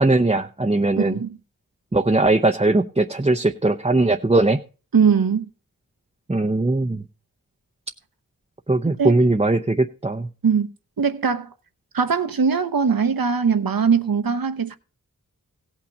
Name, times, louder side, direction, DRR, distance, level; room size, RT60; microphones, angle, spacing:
voice 1, 0.0-1.2 1.9-4.6 6.3-7.0 8.7-10.3, right 2 dB, 15° right, 0.7 m, -19 dB
voice 2, 1.0-1.4 4.9-5.5 9.0-9.2 10.4-10.7 11.0-11.5 11.9-14.8, right 6 dB, 75° right, 1.0 m, -20 dB
16.5 x 5.9 x 5.2 m
wide cardioid pair, 50°, 36 cm